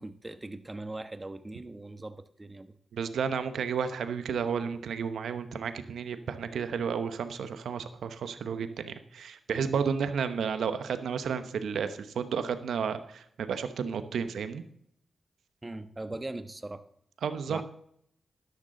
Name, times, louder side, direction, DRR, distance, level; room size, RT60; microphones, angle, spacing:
voice 1, 0.0-2.7 15.6-16.8 17.5-17.6, right 2 dB, 25° right, 10 dB, 1.2 m, -40 dB
voice 2, 2.9-14.6 17.2-17.6, right 6 dB, 85° right, 10 dB, 0.9 m, -32 dB
12.0 x 11.5 x 3.8 m, 0.69 s
supercardioid pair, 45°, 0 cm